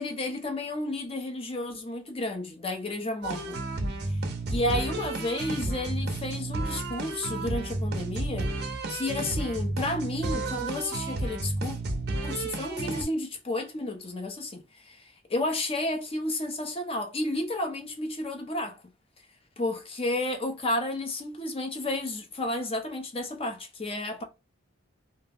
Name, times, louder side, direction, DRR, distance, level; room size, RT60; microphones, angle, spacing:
voice 1, 0.0-3.6 4.1-4.2 4.5-8.5 8.9-11.8 12.2-18.8 19.6-24.2, left 2 dB, 25° left, 0.5 m, -32 dB
sound 1, 3.2-13.0, right 2 dB, 50° right, 0.5 m, -32 dB
2.3 x 2.1 x 3.3 m
head